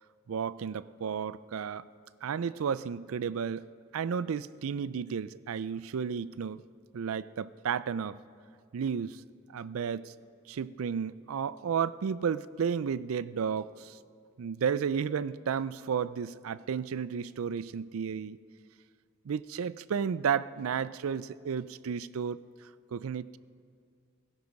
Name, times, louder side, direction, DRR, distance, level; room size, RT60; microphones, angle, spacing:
voice 1, 0.3-1.9 2.2-3.7 3.9-6.6 6.9-8.2 8.7-9.2 9.5-10.1 10.5-14.0 14.4-18.4 19.3-22.4 22.9-23.4, right 7 dB, 90° right, 18 dB, 0.4 m, -32 dB
17.0 x 16.0 x 5.3 m, 2.2 s
head